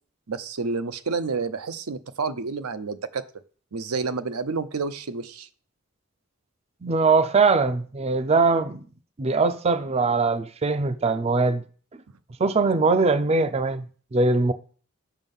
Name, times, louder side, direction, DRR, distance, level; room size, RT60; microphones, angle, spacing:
voice 1, 0.3-3.2 3.7-5.5, right 4 dB, 90° right, 0.7 m, -29 dB
voice 2, 6.8-8.8 9.2-11.6 12.4-13.8 14.1-14.5, right 3 dB, 30° right, 0.4 m, -21 dB
7.3 x 6.4 x 5.4 m
head